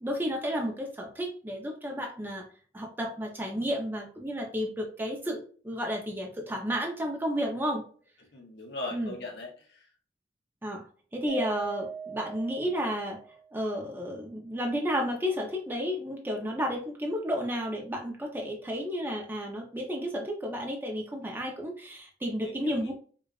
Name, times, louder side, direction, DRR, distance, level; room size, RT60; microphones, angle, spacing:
voice 1, 0.0-2.4 2.7-7.8 8.9-9.2 10.6-10.9 11.1-13.2 13.5-22.9, equal, 10° right, 1 dB, 0.6 m, -32 dB
voice 2, 8.3-9.9 22.4-22.9, left 2 dB, 70° left, 1 dB, 0.9 m, -40 dB
Mallet percussion, 11.3-13.5, right 6 dB, 85° right, 1.7 m, -40 dB
5.0 x 2.4 x 2.4 m, 0.41 s
head